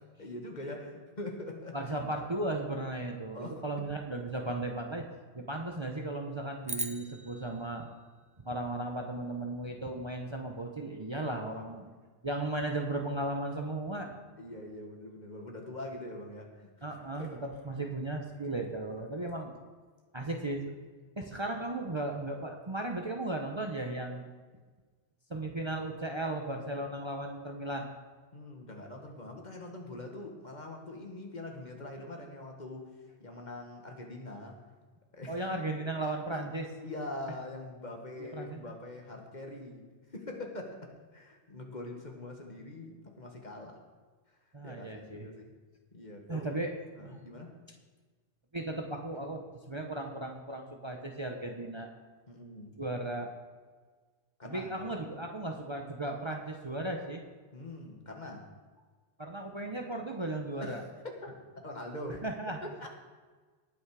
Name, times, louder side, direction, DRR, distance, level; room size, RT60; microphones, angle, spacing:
voice 1, 0.2-1.9 3.3-3.6 11.4-11.6 14.4-17.3 28.3-32.9 33.2-34.6 35.1-35.4 36.4-36.5 36.8-43.8 44.6-45.5 45.9-46.5 46.9-47.6 52.3-52.8 54.4-54.9 57.5-58.5 60.6-61.3 61.6-62.2 62.6-62.9, left 2 dB, 40° left, 2 dB, 1.8 m, -43 dB
voice 2, 1.7-5.0 5.3-7.9 8.4-11.9 12.2-14.1 16.8-19.5 20.1-20.7 21.2-24.3 25.3-27.9 35.3-36.7 38.2-38.6 44.5-45.3 46.3-46.7 47.0-47.2 48.5-51.9 52.8-53.3 54.4-57.2 59.2-60.8 62.2-62.6, right 2 dB, 25° right, 2 dB, 0.9 m, -36 dB
sound 1, 6.6-9.1, right 1 dB, 10° right, 0.4 m, -41 dB
19.0 x 6.3 x 4.8 m, 1.4 s
omnidirectional pair, 1.1 m